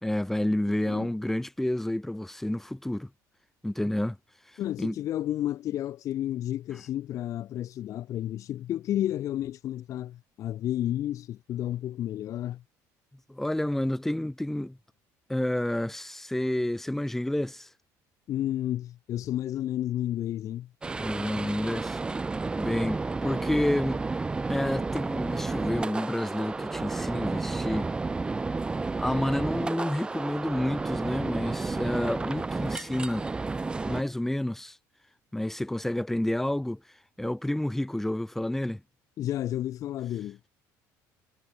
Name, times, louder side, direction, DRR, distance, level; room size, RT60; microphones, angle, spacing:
voice 1, 0.0-3.1 3.6-4.2 4.8-4.9 13.3-14.8 15.3-17.7 21.0-22.0 22.6-24.0 24.5-27.9 29.0-33.3 33.8-34.8 35.3-36.8 37.2-38.8, left 1 dB, 5° left, 1.7 m, -29 dB
voice 2, 4.6-12.6 18.3-20.7 39.2-40.4, left 12 dB, 50° left, 0.8 m, -31 dB
sound 1, 20.8-34.0, right 3 dB, 15° right, 0.4 m, -31 dB
cardioid pair, 130°, 7 cm